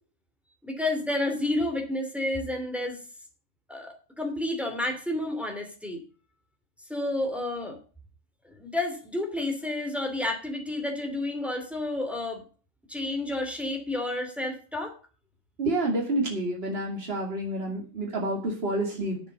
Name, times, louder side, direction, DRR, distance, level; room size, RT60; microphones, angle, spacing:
voice 1, 0.6-3.0 3.7-6.0 6.9-7.8 8.5-12.4 12.9-14.9, left 1 dB, ahead, 3 dB, 2.7 m, -30 dB
voice 2, 15.6-19.2, right 1 dB, 50° right, 0 dB, 2.8 m, -29 dB
9.7 x 7.7 x 7.8 m, 0.38 s
omnidirectional pair, 1.3 m